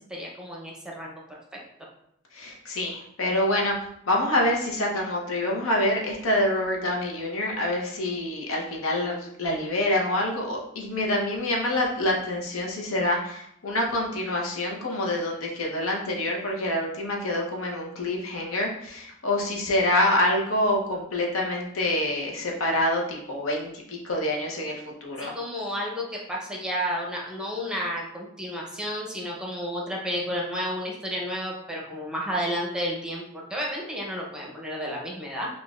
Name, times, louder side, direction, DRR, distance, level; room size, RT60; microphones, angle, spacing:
voice 1, 0.1-1.6 25.3-35.5, equal, 5° right, -3 dB, 0.7 m, -31 dB
voice 2, 2.3-3.8 4.1-25.4, left 1 dB, 80° left, -1 dB, 0.8 m, -26 dB
5.9 x 2.4 x 2.4 m, 0.74 s
head